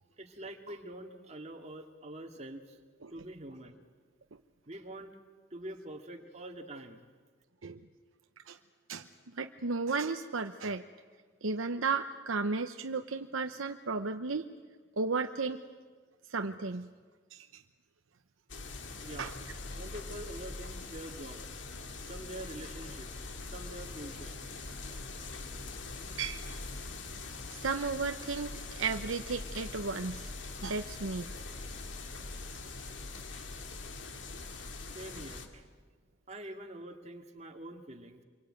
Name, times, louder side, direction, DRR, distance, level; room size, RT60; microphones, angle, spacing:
voice 1, 0.2-2.8 3.1-3.8 4.7-5.1 5.5-7.0 19.0-19.3 19.8-21.5 22.1-23.1 23.5-24.4 34.9-35.7 36.3-38.2, right 1 dB, 35° right, 3 dB, 2.4 m, -45 dB
voice 2, 9.3-10.8 11.4-14.4 15.0-15.6 16.3-16.9 17.3-17.6 19.2-19.3 21.8-21.9 26.2-26.5 27.5-30.3 30.6-31.3, right 4 dB, 85° right, 7 dB, 0.9 m, -34 dB
sound 1, 18.5-35.5, left 3 dB, 65° left, 2.3 m, -43 dB
27.0 x 23.5 x 9.1 m, 1.5 s
head